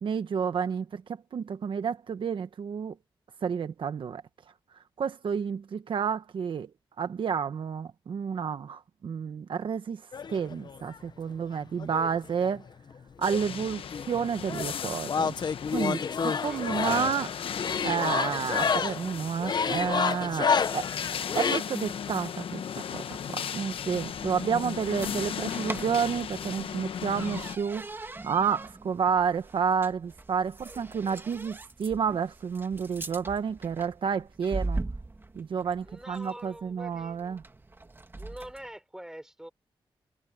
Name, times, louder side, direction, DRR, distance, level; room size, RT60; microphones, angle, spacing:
voice 1, 0.0-2.9 3.4-4.2 5.0-6.7 7.0-12.6 13.2-15.3 15.7-17.4 17.8-20.9 21.3-23.0 23.3-34.9 35.3-37.4, right 6 dB, 65° right, 1.2 m, -30 dB
sound 1, 10.1-11.0 11.8-13.0 13.2-21.6, left 6 dB, 50° left, 0.8 m, -30 dB
sound 2, 13.2-27.6, left 8 dB, 80° left, 1.0 m, -37 dB
sound 3, 23.7-38.7, right 2 dB, 25° right, 1.8 m, -41 dB
voice 2, 35.8-37.4 38.2-39.5, right 1 dB, 5° right, 3.8 m, -45 dB
wide cardioid pair, 100°, 9 cm